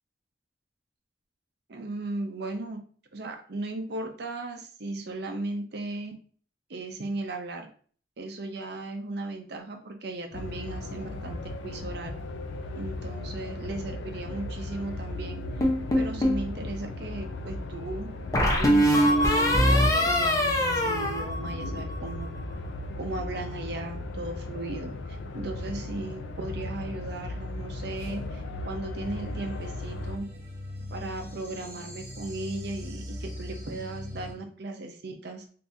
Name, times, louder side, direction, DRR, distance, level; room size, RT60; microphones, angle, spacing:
voice 1, 1.7-2.8 3.1-6.1 6.7-7.7 8.2-12.1 12.7-15.4 15.9-22.3 23.0-30.3 30.9-35.4, right 2 dB, 60° right, 4 dB, 0.6 m, -36 dB
sound 1, 10.3-30.2, left 2 dB, 75° left, 0.4 m, -36 dB
sound 2, 15.6-16.4 18.3-22.0, equal, 20° left, 0.6 m, -23 dB
sound 3, 29.0-34.3, left 1 dB, 15° right, 0.8 m, -40 dB
3.5 x 2.7 x 2.6 m, 0.43 s
head